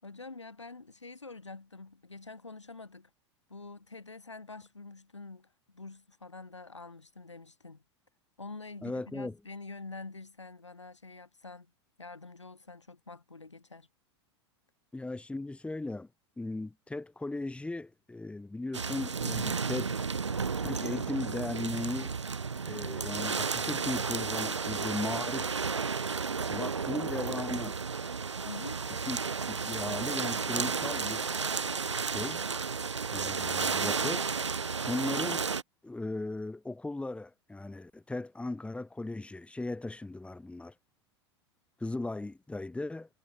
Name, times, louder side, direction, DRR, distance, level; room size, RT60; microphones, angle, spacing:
voice 1, 0.0-3.1 3.5-7.8 8.4-11.7 12.0-13.9 28.5-28.8, left 3 dB, 90° left, 7.7 m, -46 dB
voice 2, 8.8-9.3 14.9-16.1 16.4-20.0 20.6-22.1 22.6-25.5 26.5-27.8 29.1-29.2 29.5-31.3 32.1-32.4 33.1-34.3 34.9-35.5 35.8-40.7 41.8-43.1, left 2 dB, 10° left, 7.1 m, -37 dB
sound 1, 18.7-35.6, right 5 dB, 85° right, 1.7 m, -33 dB
figure-of-eight pair, 90°, 15 cm